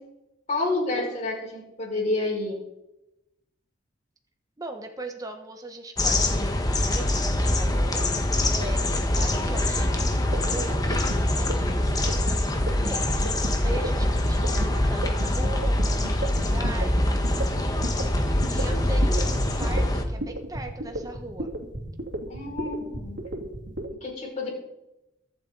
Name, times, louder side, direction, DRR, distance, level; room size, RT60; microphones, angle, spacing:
voice 1, 0.5-2.6 14.1-14.7 22.3-23.2 24.0-24.6, left 2 dB, 40° left, -3 dB, 5.8 m, -29 dB
voice 2, 4.6-21.5, right 2 dB, 20° right, 4 dB, 1.3 m, -40 dB
sound 1, 6.0-20.0, left 1 dB, 20° left, 1.6 m, -24 dB
sound 2, 10.1-23.9, right 1 dB, 75° right, 2.8 m, -33 dB
23.0 x 7.8 x 4.1 m, 0.89 s
head